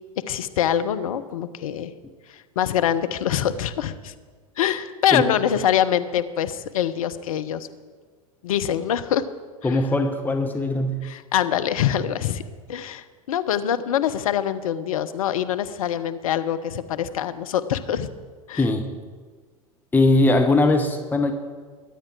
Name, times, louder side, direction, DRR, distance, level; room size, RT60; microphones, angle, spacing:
voice 1, 0.2-1.9 2.6-4.1 4.6-7.7 8.4-9.2 9.6-9.8 11.0-12.4 12.7-18.1 18.5-18.6, left 10 dB, 70° left, 12 dB, 0.9 m, -24 dB
voice 2, 9.6-11.0 18.6-18.9 19.9-21.3, left 2 dB, 10° left, 5 dB, 1.2 m, -20 dB
22.0 x 8.8 x 4.6 m, 1.5 s
hypercardioid pair, 90°, 19 cm